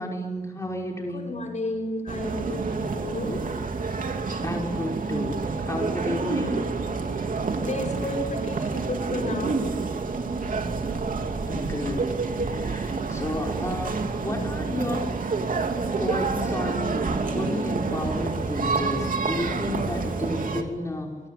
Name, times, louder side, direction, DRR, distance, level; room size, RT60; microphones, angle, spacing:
voice 1, 0.0-1.3 4.4-6.6 11.5-12.1 12.4-15.0 16.0-21.1, left 1 dB, 20° left, 0 dB, 5.4 m, -32 dB
voice 2, 1.1-4.4 7.1-11.5 15.7-15.9, left 1 dB, 55° left, 3 dB, 6.4 m, -35 dB
sound 1, 2.1-20.6, right 4 dB, 70° right, 2.9 m, -28 dB
sound 2, 8.7-8.9 9.5-9.6 10.1-10.2 10.8-11.0 11.5-11.7 12.2-12.4 12.9-13.1 13.6-13.8 14.3-14.4 14.9-15.1 15.7-15.8, right 3 dB, 45° right, 3.7 m, -38 dB
26.0 x 24.5 x 8.7 m, 1.2 s
wide cardioid pair, 95°, 14 cm